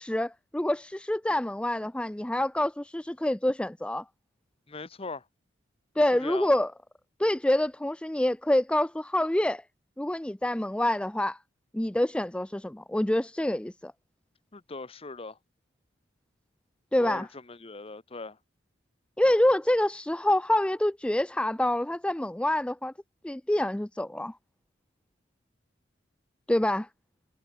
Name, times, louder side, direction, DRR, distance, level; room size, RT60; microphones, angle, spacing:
voice 1, 0.0-4.0 6.0-6.7 7.2-9.6 10.0-11.4 11.7-13.9 16.9-17.3 19.2-22.9 23.2-24.4 26.5-26.9, left 1 dB, 5° left, 0.4 m, -26 dB
voice 2, 4.7-5.2 6.1-6.5 14.5-15.4 17.0-18.4, left 3 dB, 30° left, 0.9 m, -40 dB
head